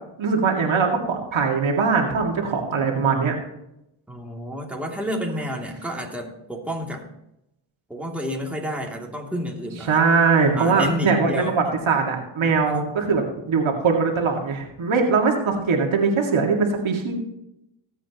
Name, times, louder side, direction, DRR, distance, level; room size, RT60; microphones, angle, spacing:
voice 1, 0.2-3.3 9.8-17.2, right 4 dB, 70° right, 1 dB, 2.3 m, -21 dB
voice 2, 4.1-7.1 7.9-10.0 10.5-11.6 12.4-12.9, equal, 5° right, -1 dB, 2.7 m, -30 dB
20.0 x 8.2 x 3.0 m, 0.84 s
cardioid pair, 70°, 50 cm